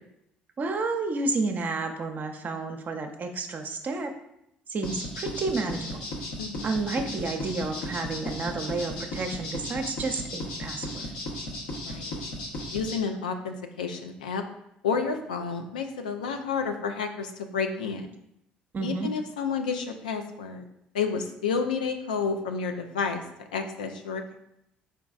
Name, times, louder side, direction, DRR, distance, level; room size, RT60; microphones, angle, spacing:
voice 1, 0.6-4.1 4.7-6.1 6.6-11.1 18.7-19.1, right 3 dB, 45° right, 4 dB, 0.5 m, -31 dB
sound 1, 4.8-13.0, left 1 dB, 75° left, 0.9 m, -35 dB
voice 2, 6.4-6.7 11.7-12.2 12.7-14.4 14.8-18.1 18.8-20.6 20.9-23.2 23.5-24.3, left 5 dB, 90° left, 5 dB, 0.3 m, -30 dB
4.4 x 4.0 x 2.4 m, 0.80 s
hypercardioid pair, 55°, 4 cm